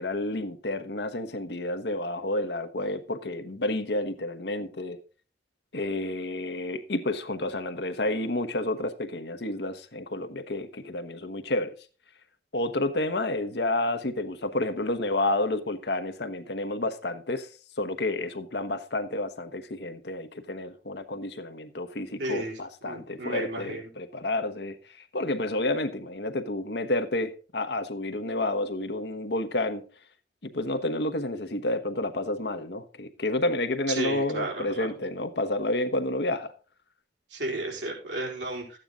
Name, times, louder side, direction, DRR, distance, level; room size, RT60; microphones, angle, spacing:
voice 1, 0.0-5.0 5.7-11.7 12.5-17.5 17.8-24.8 25.1-29.8 30.4-36.5, left 2 dB, 70° left, 1.1 m, -30 dB
voice 2, 22.2-22.5 22.8-23.9 33.9-34.9 37.3-38.8, right 2 dB, 85° right, 4.5 m, -33 dB
13.0 x 8.9 x 3.7 m
head